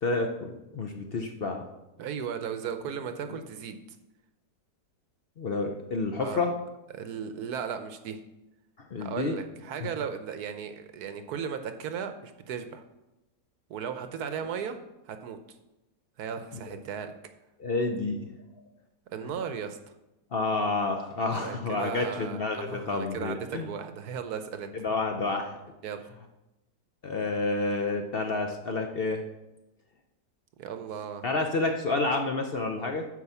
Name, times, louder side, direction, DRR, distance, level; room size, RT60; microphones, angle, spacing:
voice 1, 0.0-1.6 3.2-3.4 5.4-6.6 8.9-9.4 9.8-9.9 17.6-18.3 20.3-23.7 24.7-25.6 27.0-29.2 31.2-33.1, left 3 dB, 55° left, 4 dB, 0.6 m, -29 dB
voice 2, 2.0-3.8 6.2-6.5 6.9-8.2 9.0-12.8 13.7-14.8 15.1-15.4 16.2-17.1 19.1-19.8 21.3-24.7 25.8-26.0 30.6-31.2, right 7 dB, 70° right, 8 dB, 1.1 m, -36 dB
9.7 x 4.7 x 6.9 m, 0.97 s
omnidirectional pair, 1.8 m